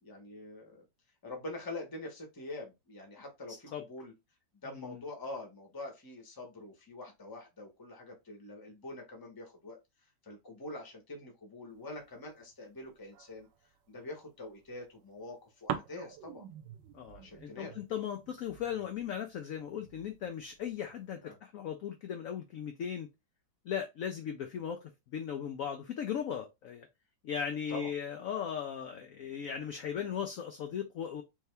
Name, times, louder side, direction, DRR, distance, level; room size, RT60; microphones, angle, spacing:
voice 1, 0.0-0.9 1.2-4.1 4.6-9.8 10.2-13.5 13.9-16.4 17.1-17.7 21.2-21.4 27.7-27.9, left 2 dB, 20° left, 0.7 m, -45 dB
sound 1, 11.7-13.9 14.4-15.3 15.7-21.2, right 9 dB, 80° right, 1.2 m, -46 dB
voice 2, 16.9-23.1 23.7-24.8 25.1-26.9 27.2-31.2, left 8 dB, 75° left, 0.7 m, -37 dB
3.4 x 2.7 x 3.3 m
omnidirectional pair, 2.0 m